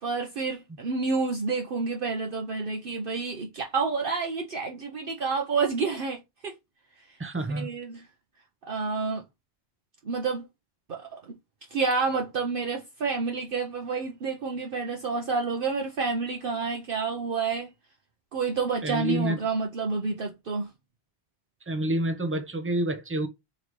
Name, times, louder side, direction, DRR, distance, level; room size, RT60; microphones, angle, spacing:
voice 1, 0.0-6.5 7.5-8.0 8.7-9.2 10.0-10.5 10.9-11.1 11.7-17.7 18.3-20.7, right 4 dB, 55° right, 0.9 m, -29 dB
voice 2, 7.2-7.7 18.8-19.4 21.7-23.3, right 1 dB, 15° right, 0.5 m, -28 dB
3.8 x 3.2 x 3.0 m
omnidirectional pair, 1.1 m